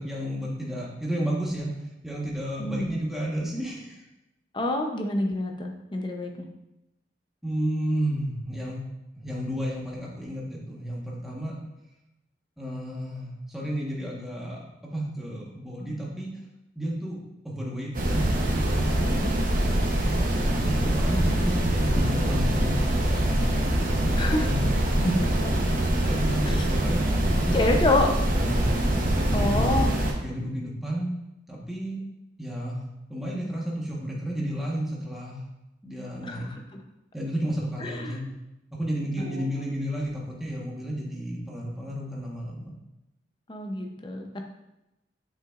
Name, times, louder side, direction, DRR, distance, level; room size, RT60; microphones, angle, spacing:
voice 1, 0.0-4.1 7.4-8.8 9.1-11.6 12.6-16.3 16.7-17.2 17.4-19.0 20.5-24.7 25.0-25.2 25.4-25.5 25.8-27.0 27.3-27.6 28.3-28.8 29.2-29.8 30.2-31.1 31.5-32.0 32.4-32.8 33.1-35.4 35.8-36.5 37.1-38.2 38.7-42.7, equal, ahead, -4 dB, 1.3 m, -32 dB
voice 2, 2.6-2.9 4.5-6.5 19.0-19.3 24.2-24.5 26.4-26.6 27.5-28.1 29.3-29.9 36.3-36.6 37.8-38.3 39.2-39.4 43.5-44.4, left 2 dB, 25° left, 3 dB, 0.7 m, -27 dB
sound 1, 17.9-30.1, right 1 dB, 50° right, 1.0 m, -24 dB
7.5 x 5.9 x 2.5 m, 0.92 s
head